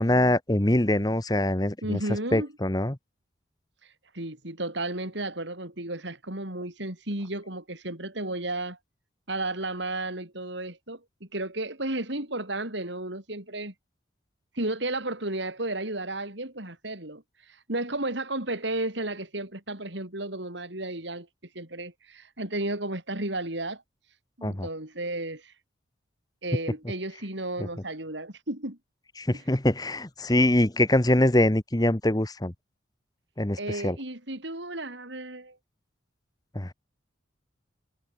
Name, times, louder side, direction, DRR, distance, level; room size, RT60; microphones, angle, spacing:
voice 1, 0.0-2.0 2.3-3.0 24.4-24.7 27.6-27.7 29.2-32.5 33.4-34.0 36.5-36.7, left 1 dB, 20° left, 1.1 m, -24 dB
voice 2, 1.8-2.5 3.8-8.8 9.3-11.0 11.3-13.7 14.5-21.3 21.5-23.8 24.4-25.5 26.4-28.8 33.6-35.6, right 2 dB, 70° right, 5.0 m, -33 dB
head